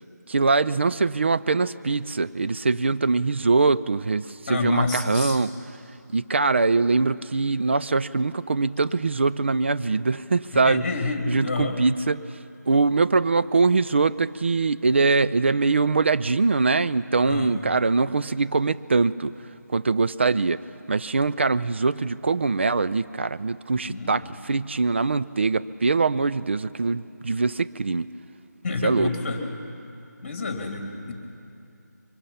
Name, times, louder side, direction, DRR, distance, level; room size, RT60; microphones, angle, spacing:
voice 1, 0.3-5.5 6.1-10.9 11.3-12.2 12.7-19.3 19.7-28.1 28.8-29.1, right 3 dB, 40° right, 14 dB, 0.5 m, -23 dB
voice 2, 4.5-5.4 10.6-11.8 17.2-17.6 23.8-24.2 28.6-29.4 30.2-31.1, left 3 dB, 35° left, 3 dB, 2.9 m, -28 dB
24.5 x 24.0 x 5.7 m, 2.6 s
figure-of-eight pair, 165°, 10 cm